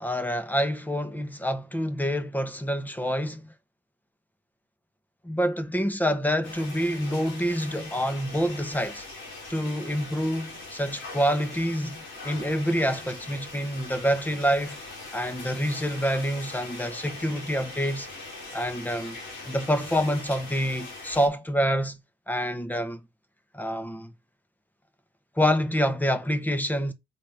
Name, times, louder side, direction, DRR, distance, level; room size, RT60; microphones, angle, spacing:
voice 1, 0.0-3.5 5.2-9.1 9.5-14.8 15.1-18.1 18.5-19.2 19.4-22.0 22.3-23.0 23.5-24.1 25.4-26.9, equal, 10° left, 1.3 m, -27 dB
sound 1, 6.4-21.3, left 2 dB, 80° left, 4.2 m, -41 dB
6.2 x 3.9 x 5.1 m
cardioid pair, 90°, 20 cm